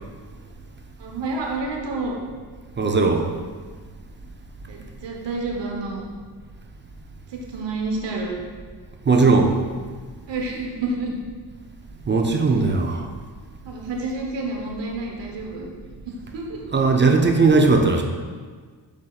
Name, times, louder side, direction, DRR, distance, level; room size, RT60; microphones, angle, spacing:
voice 1, 1.0-2.2 4.7-6.1 7.3-8.3 10.3-11.1 13.6-15.7 16.0-16.6, right 2 dB, 70° right, 0 dB, 1.0 m, -29 dB
voice 2, 2.8-3.3 9.1-9.6 12.1-13.0 16.7-18.0, right 3 dB, 25° right, 3 dB, 0.4 m, -18 dB
7.4 x 2.7 x 2.3 m, 1.5 s
supercardioid pair, 55°, 45 cm